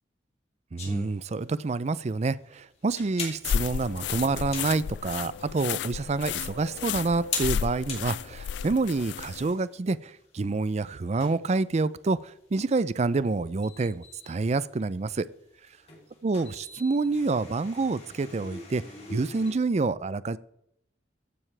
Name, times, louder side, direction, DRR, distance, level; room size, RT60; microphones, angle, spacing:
voice 1, 0.7-15.3 16.2-18.8 19.1-20.4, right 3 dB, 40° right, 17 dB, 0.4 m, -28 dB
sound 1, 0.8-19.5, left 4 dB, 35° left, 3.0 m, -43 dB
sound 2, 3.4-9.5, left 8 dB, 70° left, 0.3 m, -33 dB
15.0 x 9.6 x 3.4 m, 0.77 s
head